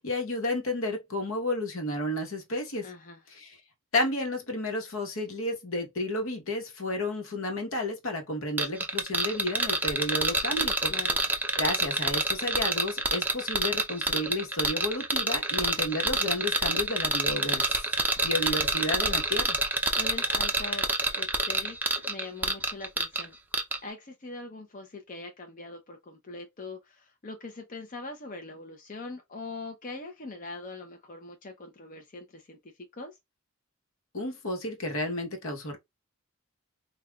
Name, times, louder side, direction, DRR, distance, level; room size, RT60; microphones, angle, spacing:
voice 1, 0.0-2.9 3.4-3.6 3.9-10.9 11.6-17.7 18.2-19.6 34.1-35.8, left 1 dB, 70° left, 1.1 m, -31 dB
voice 2, 2.8-3.2 10.9-11.2 20.0-20.9 21.1-23.4 23.8-33.2, left 3 dB, 40° left, 0.6 m, -42 dB
sound 1, 8.6-23.2 23.5-23.8, right 2 dB, 10° right, 0.5 m, -27 dB
5.5 x 2.3 x 2.3 m
head